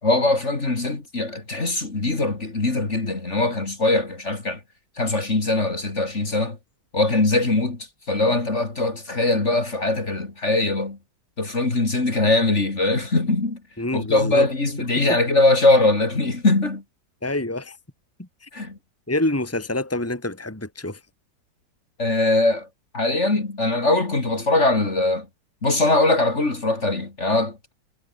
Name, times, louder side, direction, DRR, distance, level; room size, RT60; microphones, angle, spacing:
voice 1, 0.0-4.6 5.0-6.6 6.9-11.0 11.4-13.6 13.9-16.8 18.5-18.8 22.0-22.7 22.9-25.3 25.6-27.7, left 2 dB, 40° left, 3.4 m, -21 dB
voice 2, 13.8-14.5 15.0-15.2 17.2-17.8 18.2-18.5 19.1-21.0, left 1 dB, 5° left, 2.8 m, -27 dB
omnidirectional pair, 2.0 m